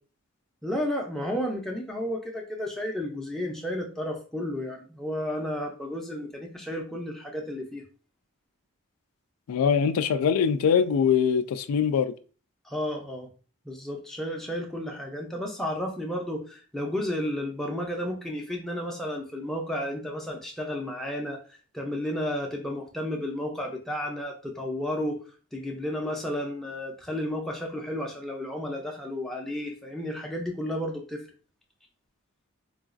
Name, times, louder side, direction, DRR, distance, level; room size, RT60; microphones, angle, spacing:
voice 1, 0.6-7.8 12.6-13.3 13.7-21.4 21.7-25.2 25.5-31.2, left 1 dB, ahead, 0.5 m, -32 dB
voice 2, 9.5-12.1, left 7 dB, 80° left, 0.3 m, -23 dB
3.9 x 2.4 x 2.4 m
head